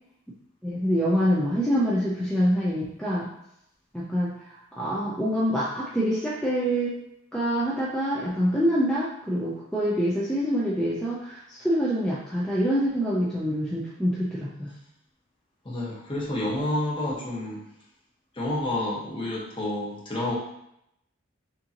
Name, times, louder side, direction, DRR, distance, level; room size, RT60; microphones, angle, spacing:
voice 1, 0.6-3.3 3.9-7.0 7.3-14.7, equal, 5° left, -7 dB, 0.6 m, -26 dB
voice 2, 15.6-17.6 18.3-20.3, left 1 dB, 25° left, -5 dB, 1.2 m, -29 dB
6.4 x 2.7 x 2.9 m, 0.78 s
head